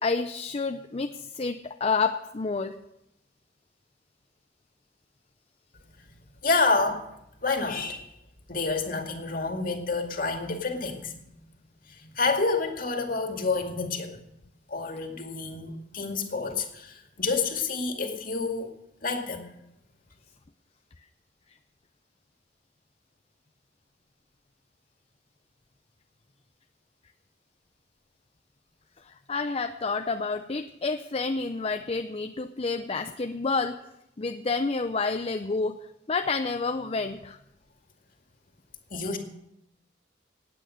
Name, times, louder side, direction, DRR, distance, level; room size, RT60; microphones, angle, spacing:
voice 1, 0.0-2.7 29.0-33.8 34.2-35.8 36.1-37.4, left 4 dB, 35° left, 6 dB, 0.6 m, -29 dB
voice 2, 6.4-7.0 7.4-8.1 8.5-11.3 11.8-14.2 14.7-18.7 19.0-19.5 38.9-39.2, left 3 dB, 50° left, 4 dB, 2.2 m, -28 dB
17.5 x 9.0 x 6.5 m, 0.82 s
head